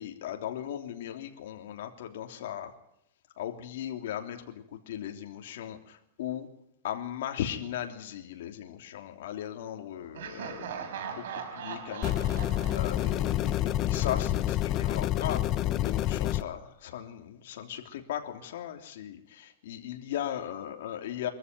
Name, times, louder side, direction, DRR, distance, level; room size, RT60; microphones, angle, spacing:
voice 1, 0.0-2.7 3.4-6.5 6.8-11.2 11.5-12.1 12.7-21.3, left 10 dB, 70° left, 4 dB, 3.2 m, -37 dB
Laughter, 10.1-14.0, right 7 dB, 75° right, 4.4 m, -40 dB
sound 1, 12.0-16.4, left 13 dB, 35° left, 0.9 m, -28 dB
24.0 x 14.0 x 9.6 m, 0.76 s
supercardioid pair, 150°, 0 cm